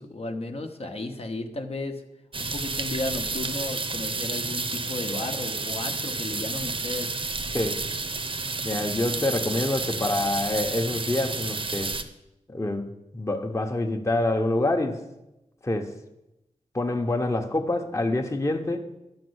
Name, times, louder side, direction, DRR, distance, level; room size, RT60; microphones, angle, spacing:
voice 1, 0.0-2.0 2.4-7.2, left 2 dB, 50° left, 4 dB, 1.0 m, -34 dB
sound 1, 2.3-12.0, right 3 dB, 40° right, 0.7 m, -31 dB
voice 2, 8.6-12.0 12.5-15.0 15.6-15.9 16.7-18.9, left 2 dB, 25° left, 3 dB, 0.9 m, -26 dB
11.5 x 5.3 x 7.9 m, 0.92 s
wide cardioid pair, 100°, 13 cm